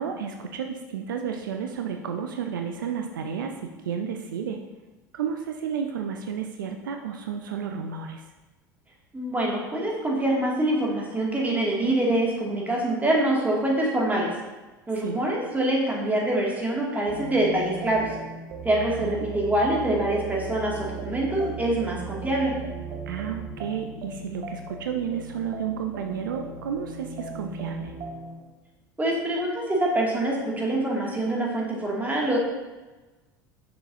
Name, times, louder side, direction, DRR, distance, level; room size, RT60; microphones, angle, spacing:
voice 1, 0.0-4.6 5.1-8.2 15.0-15.2 18.8-19.2 23.1-28.0, right 7 dB, 75° right, 5 dB, 0.5 m, -32 dB
voice 2, 9.1-14.3 14.9-18.1 18.6-22.5 29.0-32.4, right 1 dB, 15° right, -3 dB, 2.2 m, -25 dB
sound 1, 17.1-28.4, right 4 dB, 50° right, 1.3 m, -37 dB
7.5 x 6.2 x 2.7 m, 1.2 s
hypercardioid pair, 70°, 11 cm